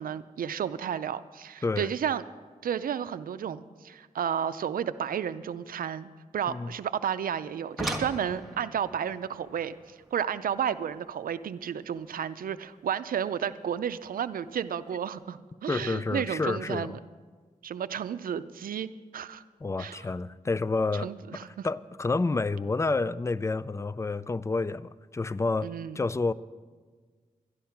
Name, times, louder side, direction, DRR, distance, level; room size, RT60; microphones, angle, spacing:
voice 1, 0.0-2.2 2.6-17.0 17.6-19.4 19.8-20.1 20.9-21.7 25.6-26.0, right 8 dB, 90° right, 14 dB, 0.5 m, -32 dB
sound 1, 7.4-12.5 13.9-14.0 14.6-14.8 15.1-15.2, right 1 dB, ahead, 1.6 m, -40 dB
voice 2, 15.7-17.0 19.6-21.1 21.6-25.7 26.0-26.3, left 3 dB, 20° left, 17 dB, 0.4 m, -29 dB
12.0 x 11.5 x 5.8 m, 1.5 s
cardioid pair, 75°, 14 cm